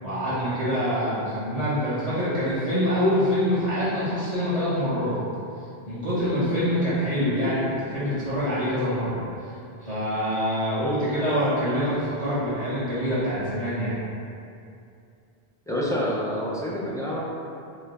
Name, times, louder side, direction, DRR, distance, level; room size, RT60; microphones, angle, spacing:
voice 1, 0.0-5.2 5.8-9.5 9.8-14.0, equal, 35° right, -12 dB, 1.1 m, -25 dB
voice 2, 15.7-17.2, equal, 5° left, -6 dB, 0.4 m, -27 dB
5.3 x 2.2 x 3.6 m, 2.5 s
omnidirectional pair, 1.1 m